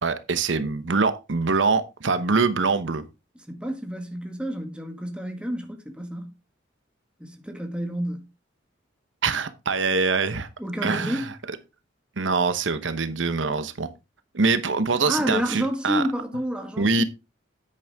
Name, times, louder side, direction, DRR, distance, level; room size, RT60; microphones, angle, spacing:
voice 1, 0.0-3.0 9.2-10.5 10.8-11.2 12.2-13.9 14.3-16.0 16.8-17.0, right 4 dB, 85° right, 1.0 m, -24 dB
voice 2, 3.5-6.3 7.2-8.3 10.6-11.3 15.1-17.0, equal, 5° right, 1.8 m, -29 dB
9.4 x 8.8 x 3.5 m
head